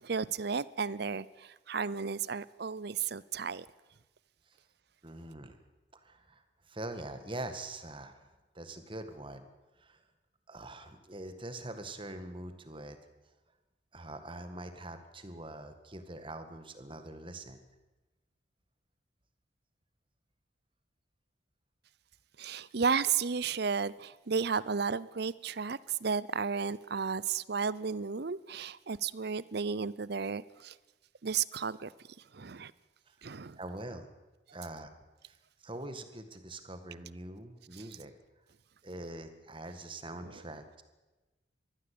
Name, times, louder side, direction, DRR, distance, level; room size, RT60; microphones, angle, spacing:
voice 1, 0.0-3.7 22.4-30.7 31.2-31.9 32.3-32.7 33.2-33.6 37.7-37.8 40.3-40.4, right 5 dB, 55° right, 0.7 m, -33 dB
voice 2, 5.0-5.6 5.9-6.4 6.7-8.3 8.5-9.5 9.8-10.0 10.5-13.0 13.9-17.6 33.1-33.2 33.6-34.1 34.5-34.9 35.2-35.3 35.6-38.1 38.8-40.8, right 2 dB, 25° right, 1.9 m, -43 dB
22.5 x 15.0 x 8.6 m
head